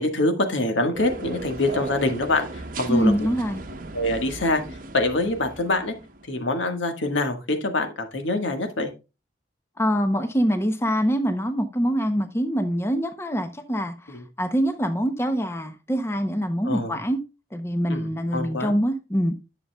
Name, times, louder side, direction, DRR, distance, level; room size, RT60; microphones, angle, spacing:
voice 1, 0.0-3.1 3.9-4.6 4.9-5.9 6.3-8.9 14.1-14.3 16.6-17.0 17.9-18.7, left 2 dB, 85° left, 1.5 m, -25 dB
sound 1, 0.9-6.3, right 2 dB, 45° right, 0.8 m, -37 dB
voice 2, 2.9-3.6 9.8-13.9 14.4-17.2 17.5-19.3, equal, 15° left, 0.6 m, -24 dB
10.5 x 6.6 x 2.2 m
head